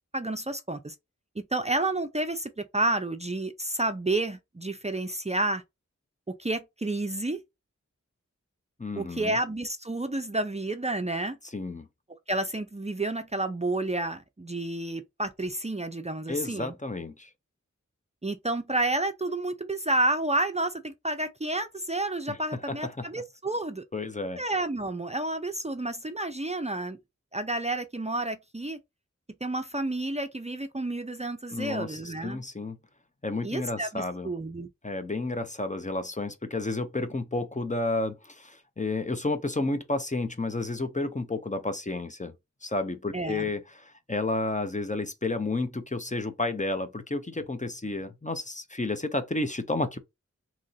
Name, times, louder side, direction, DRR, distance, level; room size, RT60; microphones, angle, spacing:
voice 1, 0.1-0.9 1.4-5.6 6.3-7.4 9.0-11.4 12.3-16.7 18.2-23.8 24.4-27.0 27.3-28.8 29.4-32.4 33.4-34.7 43.1-43.5, right 2 dB, 20° right, 0.5 m, -30 dB
voice 2, 8.8-9.4 11.5-11.9 16.3-17.3 22.3-22.4 22.7-23.1 23.9-24.4 31.5-32.8 33.2-34.3 34.8-42.3 42.6-50.0, left 2 dB, 25° left, 0.6 m, -31 dB
3.0 x 2.5 x 4.0 m
wide cardioid pair, 45°, 30 cm